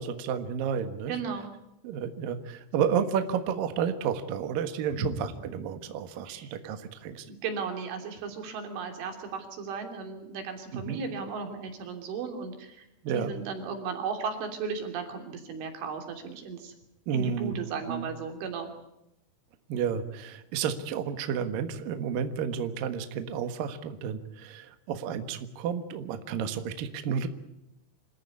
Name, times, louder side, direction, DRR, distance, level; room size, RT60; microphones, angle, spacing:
voice 1, 0.0-1.1 1.8-7.3 10.7-11.0 13.0-13.3 17.1-17.5 17.9-18.1 19.7-27.3, right 7 dB, 60° right, 8 dB, 2.6 m, -31 dB
voice 2, 1.1-1.5 4.9-5.1 6.3-6.6 7.3-16.7 17.1-18.7, right 5 dB, 85° right, 4 dB, 5.6 m, -35 dB
26.5 x 14.5 x 9.6 m, 0.88 s
omnidirectional pair, 5.4 m